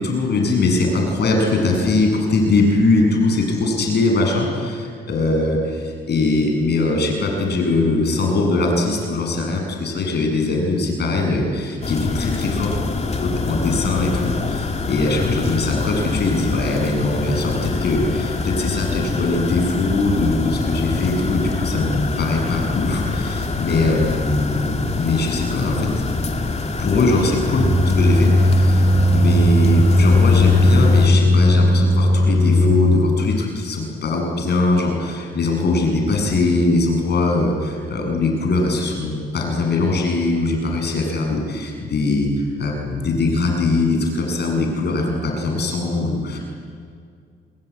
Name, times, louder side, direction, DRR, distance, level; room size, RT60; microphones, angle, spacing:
voice 1, 0.0-12.8 13.2-25.9 26.8-28.8 29.1-42.3 42.6-46.4, left 2 dB, 55° left, 1 dB, 7.9 m, -21 dB
sound 1, 11.8-31.1, left 3 dB, 35° left, 2.6 m, -25 dB
sound 2, 27.6-32.8, left 1 dB, 15° right, 5.9 m, -16 dB
28.5 x 21.0 x 10.0 m, 2.2 s
cardioid pair, 90°, 20 cm